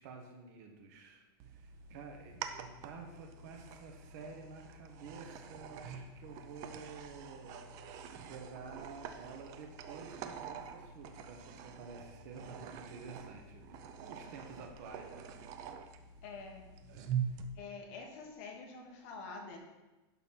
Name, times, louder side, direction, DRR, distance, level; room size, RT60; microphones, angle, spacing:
voice 1, 0.0-13.6 14.0-15.8 16.9-17.2, right 5 dB, 45° right, 3 dB, 1.2 m, -51 dB
sound 1, 1.4-17.5, right 7 dB, 25° right, 0.5 m, -45 dB
voice 2, 16.2-16.7 17.5-19.6, left 4 dB, 35° left, 2 dB, 1.5 m, -47 dB
11.0 x 4.1 x 5.8 m, 1.1 s
supercardioid pair, 175°, 13 cm